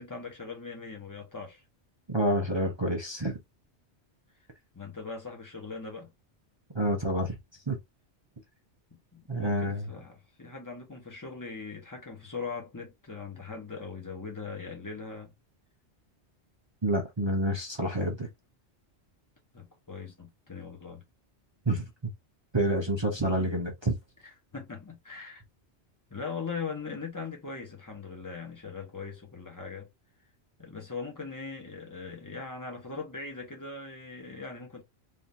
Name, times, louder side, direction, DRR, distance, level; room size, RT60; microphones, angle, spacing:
voice 1, 0.0-1.6 4.7-6.1 8.9-15.3 19.5-21.0 23.1-23.7 24.2-25.4 26.1-29.9 30.6-34.8, left 4 dB, 15° left, 1.2 m, -40 dB
voice 2, 2.1-3.4 6.7-7.4 7.7-7.8 9.3-9.9 16.8-18.3 21.7-21.8 22.5-23.9, right 1 dB, 25° right, 0.8 m, -28 dB
3.6 x 2.9 x 2.7 m
omnidirectional pair, 1.2 m